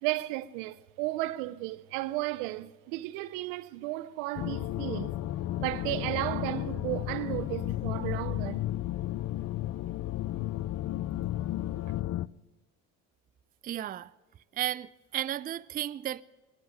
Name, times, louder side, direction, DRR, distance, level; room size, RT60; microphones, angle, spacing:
voice 1, 0.0-5.2 5.6-8.6, right 17 dB, 80° right, 0.8 m, -34 dB
sound 1, 4.4-12.3, left 14 dB, 45° left, 0.5 m, -33 dB
voice 2, 13.6-14.1 14.5-16.2, right 12 dB, 25° right, 0.4 m, -33 dB
22.0 x 7.5 x 7.8 m
hypercardioid pair, 65°, 39 cm